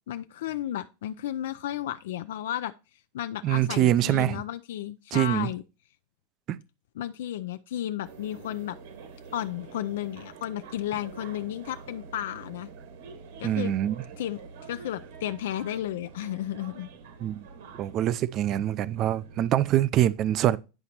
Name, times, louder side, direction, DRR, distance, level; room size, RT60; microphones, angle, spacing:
voice 1, 0.1-2.7 3.1-5.6 7.0-8.8 9.3-12.7 13.4-13.7 14.2-16.9, left 12 dB, 75° left, 0.5 m, -33 dB
voice 2, 3.4-4.4 5.1-5.5 6.5-6.6 13.4-14.0 17.2-17.4 17.8-20.6, right 12 dB, 30° right, 0.4 m, -24 dB
sound 1, 8.0-19.5, right 5 dB, 65° right, 1.7 m, -47 dB
9.9 x 5.2 x 2.9 m
supercardioid pair, 170°, 0 cm